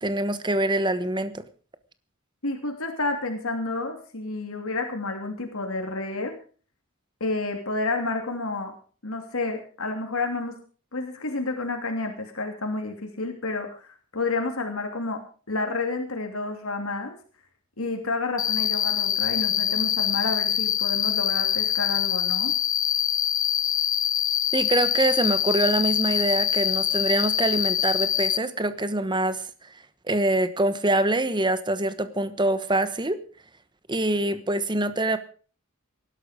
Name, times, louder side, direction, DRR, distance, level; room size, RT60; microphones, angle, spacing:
voice 1, 0.0-1.4 24.5-29.5 30.1-33.2 33.9-35.2, right 1 dB, 20° right, 12 dB, 1.2 m, -24 dB
voice 2, 2.4-6.3 7.2-8.7 9.0-10.5 10.9-15.2 15.5-17.2 17.8-22.5, left 3 dB, 85° left, 4 dB, 2.9 m, -30 dB
Cricket, 18.4-28.4, left 10 dB, 40° left, 0.6 m, -24 dB
19.0 x 12.0 x 5.2 m, 0.40 s
head